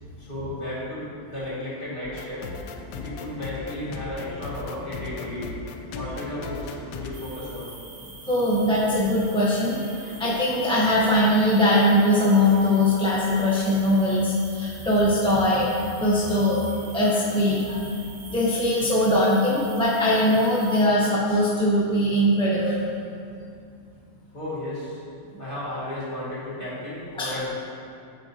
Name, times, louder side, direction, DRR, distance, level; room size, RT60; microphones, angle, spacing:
voice 1, 0.2-2.5 2.9-5.6 5.9-7.7 10.0-10.2 24.3-25.0 25.4-27.5, left 1 dB, 35° left, -9 dB, 2.4 m, -34 dB
sound 1, 2.0-7.1, left 4 dB, 80° left, 1.1 m, -37 dB
sound 2, 7.1-20.9, right 3 dB, 35° right, 1.1 m, -45 dB
voice 2, 8.3-15.7 16.0-16.6 16.9-17.8 18.2-22.8 25.3-25.4 27.2-27.3, left 1 dB, 5° left, -7 dB, 0.8 m, -21 dB
8.5 x 8.5 x 2.8 m, 2.5 s
omnidirectional pair, 1.5 m